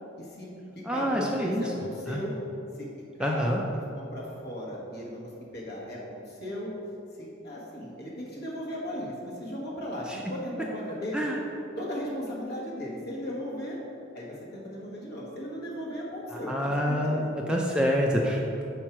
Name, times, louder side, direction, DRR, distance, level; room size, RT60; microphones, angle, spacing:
voice 1, 0.2-0.6 0.9-2.3 2.7-2.9 3.2-3.5 3.7-6.7 7.2-11.2 11.8-13.8 14.1-17.2, equal, 55° left, -4 dB, 1.4 m, -36 dB
voice 2, 0.8-1.6 2.1-2.2 3.2-3.6 11.1-11.4 16.5-18.6, equal, 5° right, -1 dB, 0.3 m, -27 dB
4.5 x 4.5 x 5.9 m, 2.8 s
head